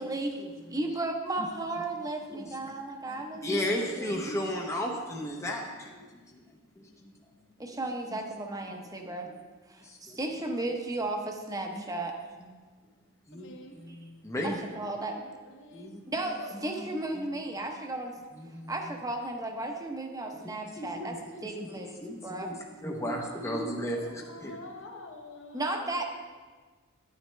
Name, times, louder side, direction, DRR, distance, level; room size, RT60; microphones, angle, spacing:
voice 1, 0.0-4.3 7.6-9.3 9.7-12.1 13.9-14.0 14.4-15.1 16.1-18.2 18.7-21.2 21.4-22.5 25.5-26.0, right 2 dB, 15° right, 3 dB, 0.9 m, -34 dB
voice 2, 2.3-2.7 3.1-6.4 6.8-7.3 7.7-7.8 9.0-9.1 9.8-10.2 11.7-11.8 12.4-12.7 13.3-14.6 15.7-16.0 16.6-16.9 17.2-17.4 18.3-18.9 20.4-24.6, left 1 dB, 15° left, 0 dB, 0.8 m, -36 dB
voice 3, 13.3-13.8 14.4-15.9 16.4-16.8 18.5-18.6 22.6-23.5 23.9-26.0, left 1 dB, 60° left, 3 dB, 1.1 m, -48 dB
11.0 x 9.3 x 3.3 m, 1.4 s
head